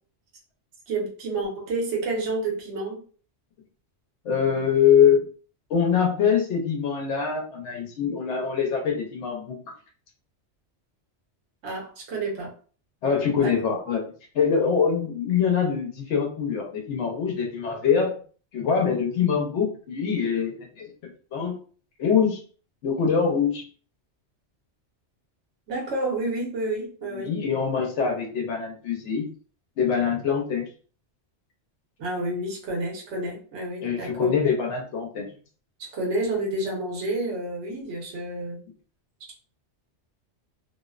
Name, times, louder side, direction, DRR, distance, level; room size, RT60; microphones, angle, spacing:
voice 1, 0.9-3.0 11.6-12.5 13.4-13.6 25.7-27.4 32.0-34.3 35.8-38.6, right 2 dB, 75° right, -1 dB, 1.1 m, -29 dB
voice 2, 4.2-5.3 5.7-9.6 13.0-14.0 14.3-18.1 18.5-20.9 21.3-21.6 22.0-22.4 22.8-23.6 27.1-29.3 29.8-30.7 33.8-35.3, left 7 dB, 90° left, 1 dB, 0.9 m, -24 dB
2.6 x 2.0 x 2.3 m, 0.41 s
omnidirectional pair, 1.2 m